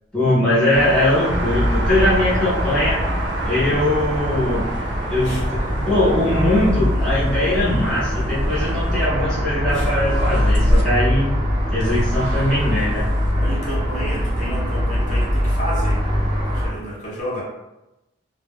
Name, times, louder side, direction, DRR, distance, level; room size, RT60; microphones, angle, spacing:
voice 1, 0.1-3.0 3.4-4.7 5.1-11.3 11.7-13.0, left 1 dB, 5° left, -11 dB, 0.7 m, -20 dB
sound 1, 0.7-9.1 9.7-10.8 11.8-13.3, right 1 dB, 80° right, 0.4 m, -28 dB
sound 2, 1.3-16.7, equal, 25° right, 0.5 m, -22 dB
voice 2, 13.3-17.4, equal, 45° left, -6 dB, 1.0 m, -31 dB
2.1 x 2.0 x 3.5 m, 0.99 s
head